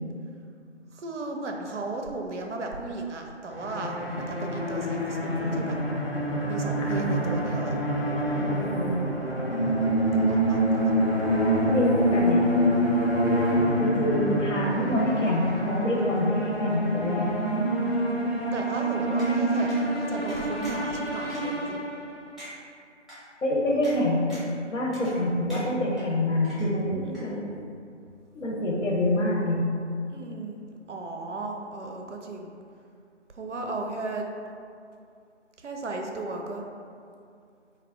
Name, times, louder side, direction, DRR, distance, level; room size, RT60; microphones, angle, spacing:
voice 1, 0.9-5.8 6.4-7.8 8.2-8.6 10.0-10.9 18.1-21.8 22.4-22.6 24.9-25.1 27.0-27.4 30.1-30.6 30.9-32.5 33.3-34.3 35.6-36.6, right 2 dB, 75° right, 2 dB, 0.5 m, -36 dB
danger track, 3.5-22.3, right 1 dB, 55° left, 0.5 m, -26 dB
voice 2, 6.9-7.3 8.3-9.0 11.6-12.4 13.8-17.3 23.4-24.3 24.7-27.5 28.3-29.6, left 1 dB, 90° left, -3 dB, 0.8 m, -26 dB
sound 1, 19.2-19.3 19.7-19.8 20.3-20.9 21.3-21.4 21.9-22.0 22.4-22.5 23.1-23.2 23.8-24.0 24.3-24.6 24.9-25.2 25.5-26.1 26.4-26.9 27.1-27.2, equal, ahead, 0.4 m, -45 dB
2.3 x 2.1 x 3.4 m, 2.4 s
figure-of-eight pair, 175°, 36 cm